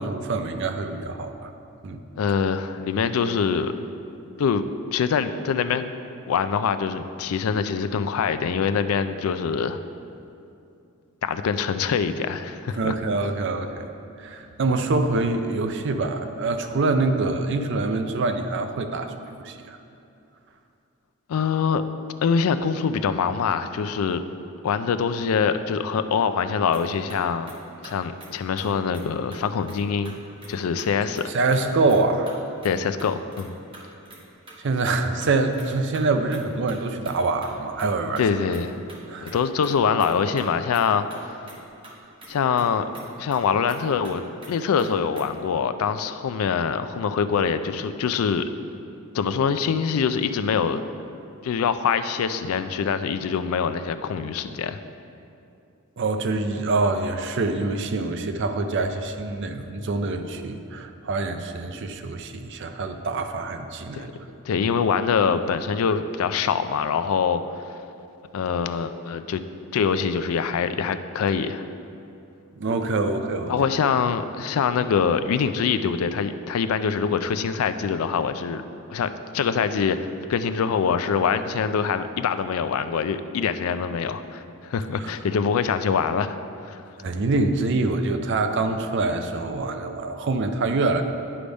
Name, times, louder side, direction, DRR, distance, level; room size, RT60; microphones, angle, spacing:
voice 1, 0.0-1.5 1.8-2.0 12.7-13.9 14.2-19.8 31.3-32.3 34.6-38.2 39.1-39.4 56.0-64.1 72.5-73.5 85.0-85.1 87.0-91.0, right 3 dB, 55° right, 7 dB, 0.4 m, -25 dB
voice 2, 2.2-3.7 4.4-4.6 4.9-5.9 6.3-9.8 11.2-12.9 21.3-21.8 22.2-24.2 24.6-27.5 27.8-30.2 30.5-31.3 32.6-33.6 38.2-38.8 39.2-41.4 42.3-42.9 43.2-48.5 49.1-50.8 51.4-54.8 63.9-64.1 64.5-67.4 68.3-69.4 69.7-71.7 73.5-78.6 78.9-80.0 80.3-86.4 86.7-86.8, left 6 dB, 75° left, 11 dB, 0.3 m, -24 dB
sound 1, 26.7-26.8 27.1-27.2 27.5-27.6 27.8-27.9 28.2-28.3 28.6-29.0 29.3-29.8 30.0-30.5 30.8-30.9 31.1-31.3 31.5-32.0 32.3-34.2 34.5-34.9 35.2-36.0 36.3-36.4 36.7-37.9 38.2-39.4 39.6-39.7 40.0-40.1 40.4-40.8 41.1-41.6 41.8-41.9 42.2-42.3 42.6-42.7 42.9-43.8 44.0-44.1 44.4-44.5 44.8-44.9 45.1-45.4, right 2 dB, 25° right, 1.0 m, -45 dB
9.9 x 3.4 x 5.1 m, 2.6 s
head